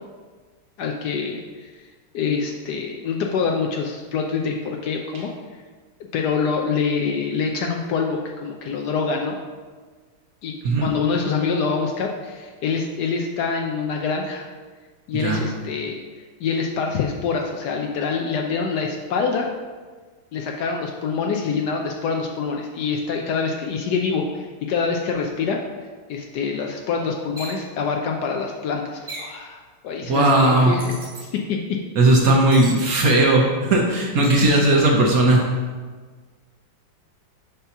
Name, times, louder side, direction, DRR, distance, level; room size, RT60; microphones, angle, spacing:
voice 1, 0.8-1.7 2.1-5.3 6.1-9.4 10.4-14.5 15.1-16.0 16.4-19.5 20.3-25.6 26.1-31.8 34.4-34.7, left 5 dB, 80° left, 1 dB, 0.9 m, -25 dB
sound 1, 27.4-27.6 29.1-29.4 30.8-31.2 32.5-32.8 34.2-34.5, right 2 dB, 30° right, 1.1 m, -36 dB
voice 2, 30.1-30.8 32.0-35.5, right 2 dB, 65° right, -1 dB, 0.9 m, -17 dB
6.7 x 2.9 x 5.7 m, 1.4 s
omnidirectional pair, 2.2 m